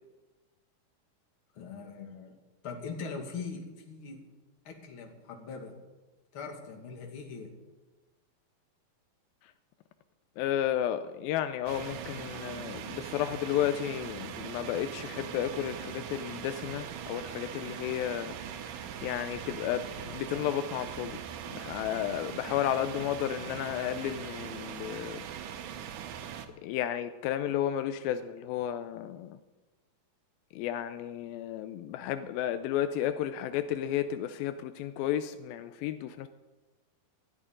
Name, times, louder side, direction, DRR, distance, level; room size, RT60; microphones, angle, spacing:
voice 1, 1.5-2.3 2.6-4.2 4.6-5.7 6.3-7.5 22.1-22.3, left 5 dB, 40° left, 2 dB, 2.4 m, -41 dB
voice 2, 10.4-21.2 21.5-25.2 26.6-29.4 30.5-36.3, left 11 dB, 85° left, 11 dB, 2.3 m, -33 dB
sound 1, 11.7-26.5, right 9 dB, 70° right, 2.3 m, -41 dB
20.0 x 13.5 x 3.8 m, 1.2 s
omnidirectional pair, 4.2 m